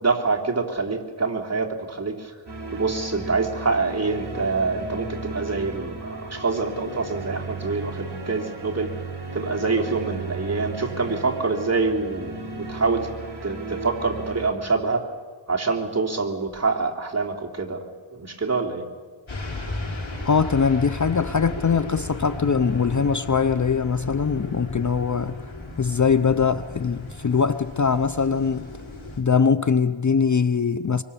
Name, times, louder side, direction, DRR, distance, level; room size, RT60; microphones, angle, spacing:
voice 1, 0.0-2.3 2.7-9.0 9.3-13.1 13.4-15.1 15.5-17.9 18.1-18.9, right 4 dB, 30° right, 3.2 m, -26 dB
sound 1, 2.5-14.5, right 3 dB, 55° right, 4.5 m, -35 dB
sound 2, 19.3-29.2, left 2 dB, 70° left, 5.5 m, -35 dB
voice 2, 20.2-25.4 25.8-28.7 29.2-31.0, left 5 dB, 40° left, 0.7 m, -22 dB
25.0 x 24.5 x 7.1 m
wide cardioid pair, 65°, 48 cm